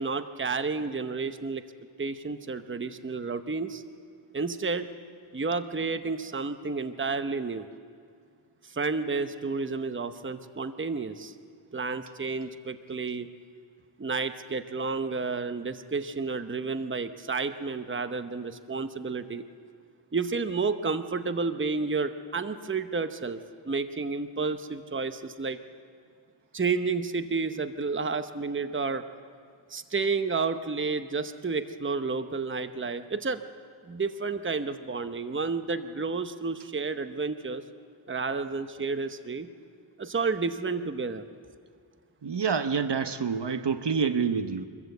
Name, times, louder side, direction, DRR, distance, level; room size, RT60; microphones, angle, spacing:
voice 1, 0.0-1.6 2.0-3.8 4.3-4.9 5.3-7.6 8.7-11.3 11.7-13.3 14.0-19.4 20.1-23.4 23.6-25.6 26.5-29.0 29.7-33.4 33.9-37.6 38.1-39.5 40.0-41.2, right 4 dB, 25° right, 10 dB, 0.9 m, -31 dB
voice 2, 42.2-44.6, right 6 dB, 55° right, 9 dB, 1.0 m, -27 dB
23.5 x 14.5 x 8.1 m, 2.2 s
wide cardioid pair, 65°, 49 cm